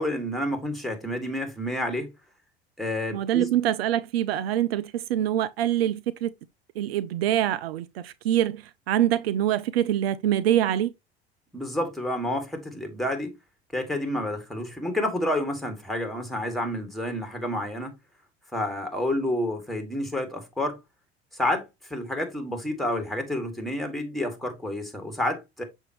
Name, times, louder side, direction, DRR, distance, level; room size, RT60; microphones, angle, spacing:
voice 1, 0.0-2.1 2.8-3.5 11.5-13.3 13.7-18.0 18.5-20.8 21.3-25.6, left 1 dB, ahead, 2.3 m, -29 dB
voice 2, 3.1-6.3 6.8-10.9, right 12 dB, 70° right, 0.5 m, -25 dB
6.7 x 5.4 x 3.0 m
figure-of-eight pair, 70°, 31 cm